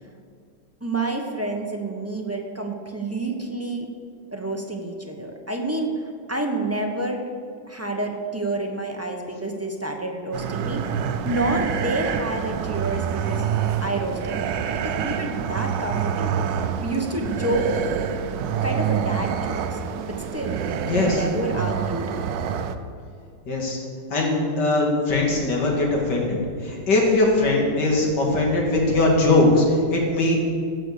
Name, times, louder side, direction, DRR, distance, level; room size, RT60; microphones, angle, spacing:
voice 1, 0.8-3.9 4.3-5.9 6.3-7.2 7.7-10.9 11.2-13.5 13.8-16.5 16.8-18.0 18.3-19.8 20.1-20.6 20.9-22.1, right 2 dB, 15° right, 1 dB, 0.6 m, -28 dB
sound 1, 10.3-22.8, right 8 dB, 75° right, 1.3 m, -27 dB
voice 2, 20.9-21.3 23.5-23.8 24.1-30.4, left 2 dB, 65° left, -1 dB, 2.7 m, -20 dB
16.0 x 6.0 x 6.7 m, 2.3 s
omnidirectional pair, 2.1 m